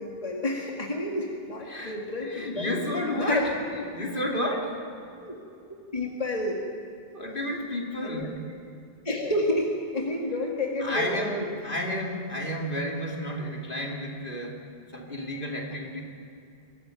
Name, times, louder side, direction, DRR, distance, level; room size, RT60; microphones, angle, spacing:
voice 1, 0.0-3.5 5.2-5.4 5.9-6.6 8.0-8.3 9.0-11.5, left 1 dB, 35° left, -1 dB, 2.1 m, -30 dB
voice 2, 1.7-4.9 7.1-8.4 10.8-16.0, left 1 dB, 55° left, 0 dB, 2.9 m, -32 dB
22.5 x 14.5 x 9.1 m, 2.6 s
omnidirectional pair, 1.0 m